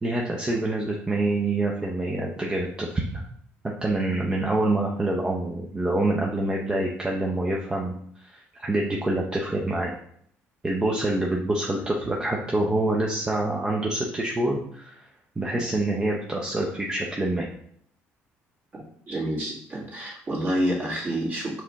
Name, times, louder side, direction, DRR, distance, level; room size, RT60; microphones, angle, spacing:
voice 1, 0.0-3.2 3.8-7.9 8.2-8.3 8.6-9.9 10.6-15.0 15.4-17.5, right 2 dB, 20° right, -2 dB, 0.7 m, -26 dB
voice 2, 18.7-21.6, equal, 40° right, -4 dB, 1.8 m, -28 dB
4.7 x 3.0 x 3.4 m, 0.65 s
cardioid pair, 100°, 5 cm